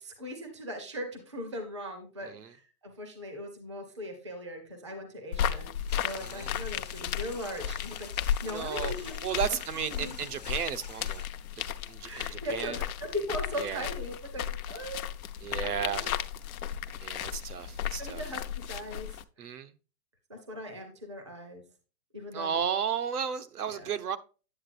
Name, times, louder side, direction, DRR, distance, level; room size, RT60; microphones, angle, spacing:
voice 1, 0.0-5.7 6.0-8.1 8.4-9.2 9.8-10.2 12.0-15.0 15.6-16.1 16.8-17.2 17.9-19.2 20.3-21.6 22.1-22.7 23.1-23.2 23.7-23.9, equal, 20° right, 0.5 m, -39 dB
sound 1, 5.3-19.2, left 9 dB, 65° left, 0.7 m, -35 dB
sound 2, 5.9-11.2, left 5 dB, 30° left, 0.5 m, -48 dB
voice 2, 6.2-6.5 8.4-8.9 9.2-11.3 11.6-12.8 13.6-13.9 15.4-16.1 17.0-18.2 19.4-19.7 22.3-24.2, right 8 dB, 70° right, 1.0 m, -34 dB
8.7 x 7.6 x 2.5 m
hypercardioid pair, 180°, 46 cm